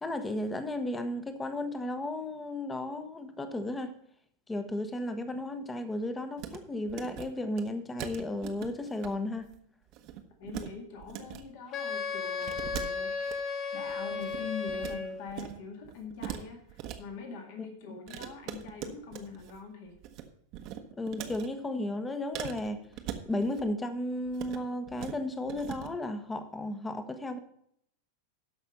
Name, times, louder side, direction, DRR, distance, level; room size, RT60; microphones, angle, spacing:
voice 1, 0.0-3.9 4.5-9.5 17.9-18.0 21.0-22.8 23.3-27.4, left 1 dB, 10° left, 9 dB, 1.2 m, -34 dB
sound 1, 6.4-6.6 6.8-7.3 7.6-7.7 8.0-9.1 9.4-9.6 9.9-10.7 11.0-11.4 12.4-13.4 13.9-15.0 15.3-15.6 15.8-17.0 18.1-19.6 19.9-20.3 20.5-21.5 22.3-23.7 24.3-24.6 24.9-25.1 25.5-25.9, right 11 dB, 40° right, 1.1 m, -41 dB
voice 2, 10.4-13.1 13.7-20.0, left 5 dB, 50° left, 3 dB, 1.9 m, -43 dB
Wind instrument woodwind instrument, 11.7-15.3, left 5 dB, 30° left, 1.1 m, -34 dB
12.5 x 5.6 x 5.4 m, 0.68 s
figure-of-eight pair, 90°, 0 cm